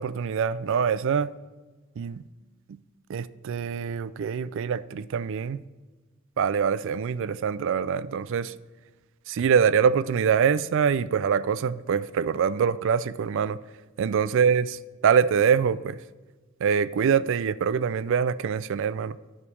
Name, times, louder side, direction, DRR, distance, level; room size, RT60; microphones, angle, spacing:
voice 1, 0.0-1.3 2.0-2.2 3.1-5.6 6.4-8.5 9.3-13.6 14.0-16.0 16.6-19.2, right 7 dB, 65° right, 0.3 m, -24 dB
9.8 x 5.2 x 6.3 m
head